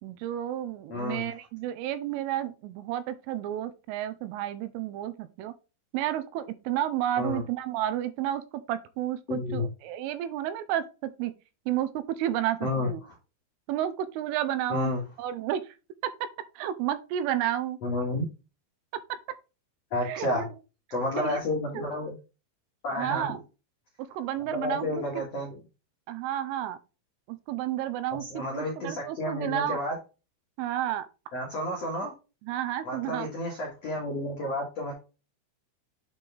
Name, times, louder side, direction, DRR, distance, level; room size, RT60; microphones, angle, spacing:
voice 1, 0.0-5.5 5.9-11.3 11.7-13.0 13.7-14.9 15.2-15.7 16.6-17.8 18.1-18.2 20.0-20.5 20.9-21.4 21.7-21.8 22.9-23.4 24.1-25.2 26.1-26.8 27.3-29.8 30.6-31.1 32.4-33.3, right 12 dB, 90° right, 3.2 m, -31 dB
voice 2, 0.9-1.3 7.2-7.4 9.3-9.6 12.6-12.9 14.7-15.0 17.8-18.2 19.9-20.5 20.9-22.1 22.8-23.3 24.5-25.6 28.2-29.9 31.3-32.1 32.8-34.9, left 1 dB, 80° left, 1.4 m, -31 dB
8.1 x 4.5 x 3.4 m
omnidirectional pair, 5.7 m